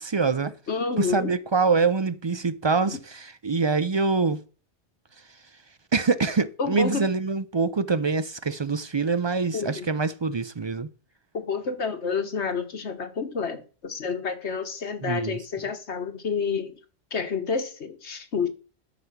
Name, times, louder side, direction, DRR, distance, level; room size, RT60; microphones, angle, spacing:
voice 1, 0.0-0.5 1.0-4.4 5.9-10.9 15.0-15.4, right 4 dB, 40° right, 0.4 m, -25 dB
voice 2, 0.7-1.3 2.9-3.0 6.6-7.1 9.5-9.9 11.3-16.8 17.1-18.5, left 5 dB, 85° left, 1.6 m, -29 dB
12.5 x 5.1 x 5.8 m
omnidirectional pair, 1.1 m